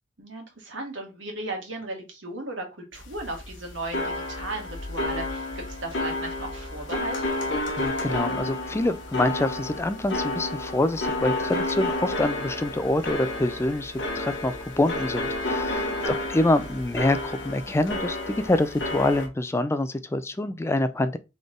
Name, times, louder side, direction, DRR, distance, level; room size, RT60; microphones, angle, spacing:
voice 1, 0.2-2.7 2.9-7.3 15.9-16.2, right 2 dB, 80° right, 1.7 m, -36 dB
sound 1, 2.9-19.3, left 2 dB, 70° left, 1.1 m, -31 dB
voice 2, 7.8-21.2, left 1 dB, 15° left, 0.3 m, -26 dB
4.0 x 3.4 x 3.7 m
head